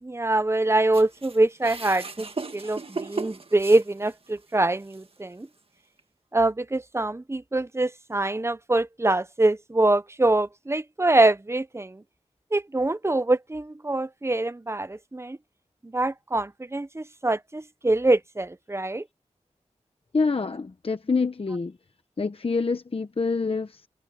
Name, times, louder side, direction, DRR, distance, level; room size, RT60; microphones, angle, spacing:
voice 1, 0.0-2.3 2.5-5.5 6.3-12.0 12.5-15.4 15.8-19.0, right 2 dB, 20° right, 0.8 m, -24 dB
sound 1, 0.9-4.4 4.9-5.0 6.0-6.1, right 4 dB, 50° right, 1.9 m, -36 dB
voice 2, 20.1-21.8 22.2-23.9, left 4 dB, 50° left, 0.9 m, -26 dB
wide cardioid pair, 75°, 12 cm